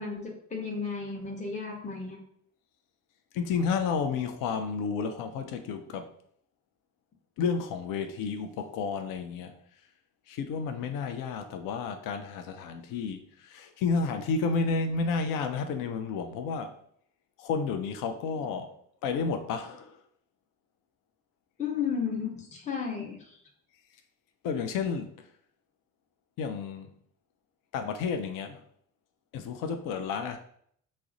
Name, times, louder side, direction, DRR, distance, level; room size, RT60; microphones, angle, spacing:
voice 1, 0.0-2.2 21.6-23.4, left 6 dB, 15° left, 0 dB, 0.7 m, -33 dB
voice 2, 3.3-6.1 7.4-9.5 10.3-16.8 17.4-18.7 19.0-20.0 24.4-25.1 26.4-26.9 27.7-28.6 29.3-30.4, left 5 dB, 45° left, 7 dB, 0.4 m, -31 dB
2.3 x 2.1 x 3.8 m, 0.65 s
hypercardioid pair, 50°, 47 cm